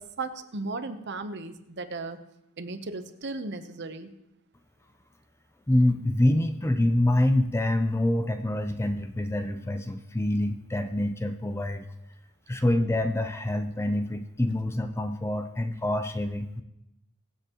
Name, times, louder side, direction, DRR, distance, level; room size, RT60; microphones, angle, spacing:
voice 1, 0.0-2.2 2.6-4.1, right 3 dB, 50° right, 9 dB, 0.8 m, -36 dB
voice 2, 5.7-11.9 12.5-16.6, left 1 dB, 10° left, 8 dB, 0.5 m, -26 dB
23.0 x 7.8 x 3.0 m, 0.87 s
head